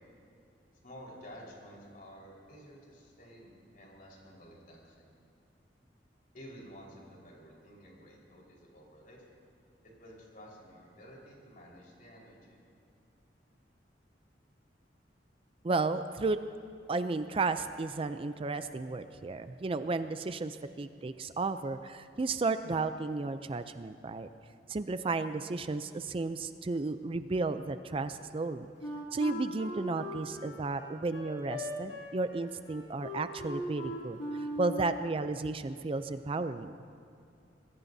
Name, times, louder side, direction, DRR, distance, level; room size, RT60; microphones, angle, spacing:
voice 1, 0.8-5.1 6.3-9.2 10.0-12.6, equal, 50° left, -3 dB, 4.5 m, -52 dB
voice 2, 15.6-16.4 16.9-24.3 24.7-28.7 29.1-36.8, right 3 dB, 30° right, 10 dB, 0.4 m, -33 dB
Wind instrument woodwind instrument, 28.8-35.1, left 1 dB, 90° left, 2.8 m, -40 dB
25.5 x 20.5 x 2.7 m, 2.5 s
head